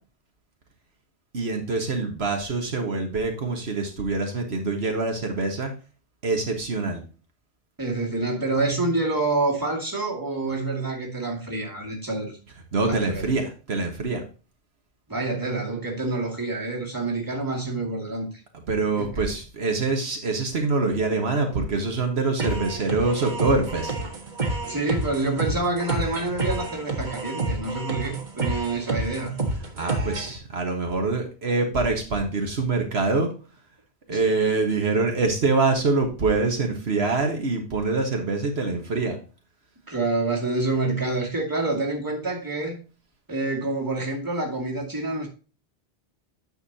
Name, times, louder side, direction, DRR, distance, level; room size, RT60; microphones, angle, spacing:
voice 1, 1.3-5.7 6.2-7.0 12.7-14.2 18.7-23.9 29.7-33.3 34.1-39.2, right 3 dB, 75° right, 1.7 m, -25 dB
voice 2, 7.8-12.4 12.8-13.2 15.1-18.4 19.0-19.2 24.6-29.3 34.1-34.2 39.9-42.8 43.3-45.3, right 2 dB, 20° right, 2.3 m, -27 dB
sound 1, 22.4-30.4, right 2 dB, 45° right, 1.7 m, -29 dB
9.5 x 6.8 x 2.8 m
omnidirectional pair, 1.1 m